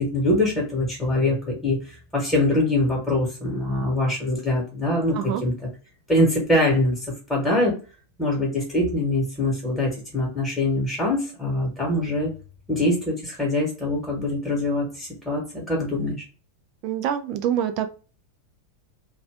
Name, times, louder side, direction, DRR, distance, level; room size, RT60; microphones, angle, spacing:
voice 1, 0.0-5.7 6.1-7.0 7.3-7.7 8.2-12.3 12.7-16.2, left 1 dB, ahead, -3 dB, 1.1 m, -23 dB
voice 2, 16.8-17.9, right 10 dB, 40° right, 8 dB, 0.4 m, -25 dB
2.5 x 2.2 x 3.5 m, 0.36 s
figure-of-eight pair, 90°, 0 cm